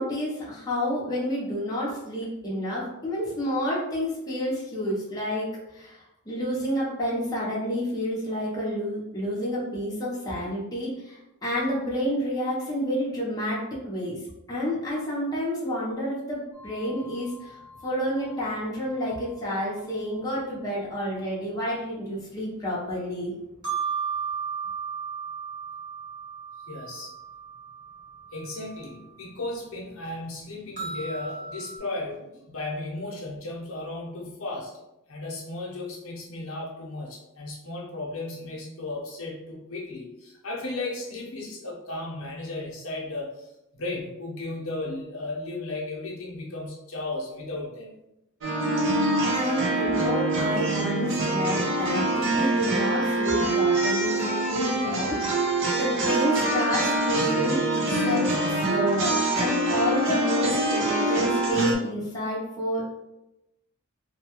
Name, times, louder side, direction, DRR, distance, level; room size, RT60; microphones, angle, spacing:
voice 1, 0.0-14.2 14.5-23.3 49.3-55.4 55.7-62.9, equal, 15° left, -6 dB, 0.7 m, -29 dB
sound 1, 16.5-20.3 21.1-21.2 23.5-29.0 29.3-29.4 29.8-29.9 30.7-31.8, right 6 dB, 35° right, 1.0 m, -36 dB
voice 2, 26.7-27.1 28.3-34.7 35.1-43.5 43.7-47.9, left 2 dB, 70° left, -3 dB, 0.7 m, -35 dB
sound 2, 48.4-61.7, right 1 dB, 55° right, 0.6 m, -25 dB
2.7 x 2.2 x 2.9 m, 0.91 s
head